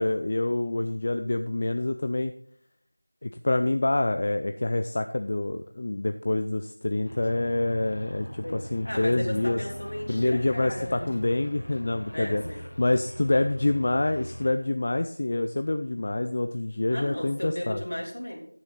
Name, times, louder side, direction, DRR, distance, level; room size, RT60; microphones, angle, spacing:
voice 1, 0.0-2.3 3.2-9.6 10.1-12.4 12.8-17.8, left 2 dB, 25° left, 8 dB, 0.3 m, -26 dB
sound 1, 7.0-14.5, equal, 90° left, 1.4 m, -41 dB
voice 2, 8.4-11.1 12.1-12.6 16.9-18.4, equal, 55° left, 0 dB, 3.2 m, -35 dB
10.5 x 9.1 x 4.0 m, 0.63 s
figure-of-eight pair, 180°, 0 cm